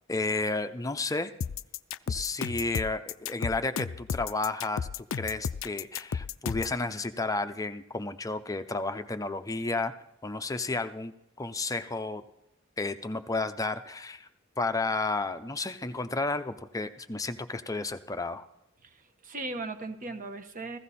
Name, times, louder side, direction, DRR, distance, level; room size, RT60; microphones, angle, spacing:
voice 1, 0.1-1.3 2.1-9.9 10.2-11.1 11.4-12.2 12.8-14.3 14.6-18.5, left 3 dB, 15° left, 9 dB, 0.6 m, -32 dB
sound 1, 1.4-6.8, left 7 dB, 70° left, 0.4 m, -33 dB
voice 2, 18.8-20.8, right 2 dB, 40° right, 8 dB, 1.1 m, -38 dB
15.5 x 14.5 x 4.2 m, 0.80 s
head